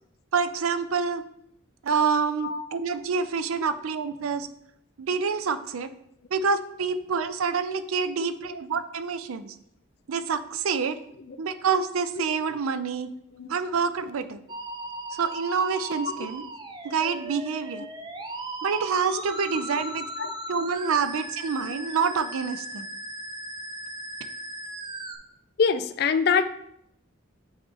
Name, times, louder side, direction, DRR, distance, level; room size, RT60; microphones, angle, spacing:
voice 1, 0.3-1.2 1.8-4.5 5.0-5.9 6.3-9.6 10.1-11.0 11.4-13.1 13.5-14.4 15.1-16.4 16.8-17.8 18.6-20.1 20.5-22.9, right 5 dB, 85° right, 11 dB, 0.5 m, -27 dB
voice 2, 8.1-8.6 11.3-11.4 12.2-12.3 13.4-13.5 16.1-16.3 20.2-20.3 25.6-26.4, left 6 dB, 50° left, 11 dB, 0.3 m, -25 dB
Musical instrument, 14.5-25.2, right 1 dB, 20° right, 0.4 m, -37 dB
8.7 x 3.1 x 3.6 m, 0.74 s
head